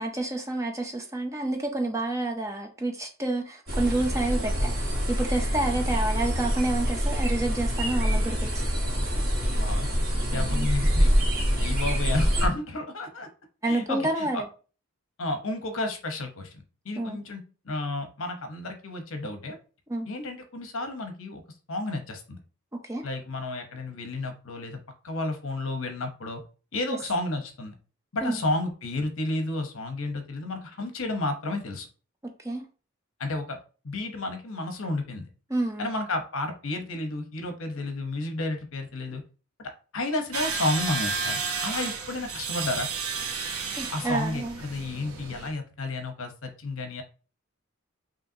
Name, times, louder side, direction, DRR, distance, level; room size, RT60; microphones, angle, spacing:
voice 1, 0.0-8.6 10.3-10.7 13.6-14.5 17.0-17.2 19.9-20.1 22.7-23.1 26.9-27.0 28.2-28.4 32.4-32.6 35.5-35.9 43.8-44.6, right 2 dB, 15° right, 0.5 m, -29 dB
sound 1, 3.7-12.5, equal, 45° right, 1.4 m, -25 dB
voice 2, 9.5-9.9 10.3-11.2 11.6-13.3 13.7-14.4 15.2-19.6 20.1-21.4 21.7-22.4 23.0-24.8 25.0-26.4 26.7-27.7 28.1-31.9 33.2-33.6 33.8-35.3 35.8-39.2 39.6-42.9 43.9-47.0, left 2 dB, 75° left, 0.9 m, -32 dB
sound 2, 40.3-45.5, right 5 dB, 90° right, 0.8 m, -32 dB
5.5 x 2.8 x 2.7 m
head